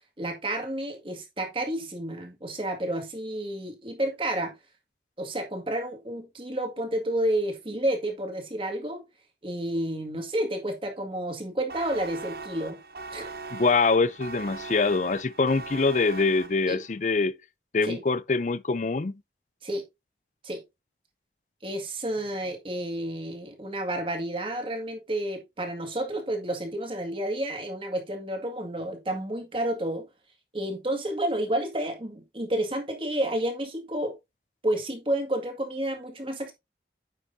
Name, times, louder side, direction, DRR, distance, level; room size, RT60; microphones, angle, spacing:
voice 1, 0.2-4.5 5.2-9.0 9.4-12.8 13.1-13.3 16.6-16.8 17.8-18.0 19.6-19.8 20.4-20.6 21.6-30.1 30.5-34.1 34.6-36.5, right 1 dB, 30° right, 2.0 m, -30 dB
sound 1, 11.7-16.9, right 3 dB, 55° right, 0.7 m, -40 dB
voice 2, 13.5-17.4 17.7-19.1, left 4 dB, 45° left, 0.5 m, -24 dB
9.4 x 6.3 x 2.7 m
head